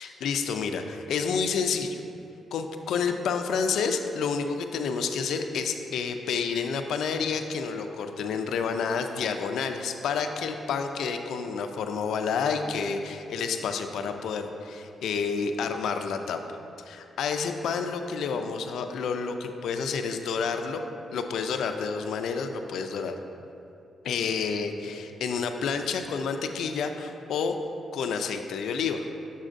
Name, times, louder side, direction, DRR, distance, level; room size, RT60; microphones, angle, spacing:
voice 1, 0.0-2.0 2.5-16.4 16.9-20.8 21.1-23.1 24.0-27.5 27.9-29.1, left 5 dB, 80° left, 6 dB, 0.4 m, -29 dB
6.8 x 6.3 x 2.5 m, 2.7 s
wide cardioid pair, 165°, 0 cm